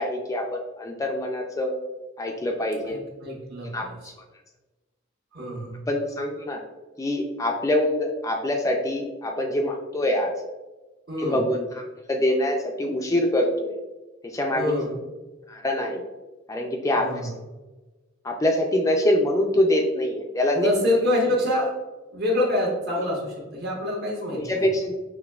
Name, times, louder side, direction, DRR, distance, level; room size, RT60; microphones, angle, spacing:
voice 1, 0.0-1.7 2.2-3.0 3.7-4.1 5.9-6.6 7.0-10.3 11.2-11.8 12.1-13.8 14.2-14.7 15.5-16.0 16.5-17.1 18.2-20.7 24.4-25.0, left 1 dB, 15° left, 2 dB, 0.3 m, -25 dB
voice 2, 2.8-3.9 5.3-5.8 11.1-11.4 14.5-15.0 16.9-17.3 20.5-21.7 22.1-24.7, left 1 dB, 55° right, -2 dB, 1.2 m, -26 dB
5.9 x 3.0 x 2.3 m, 1.2 s
head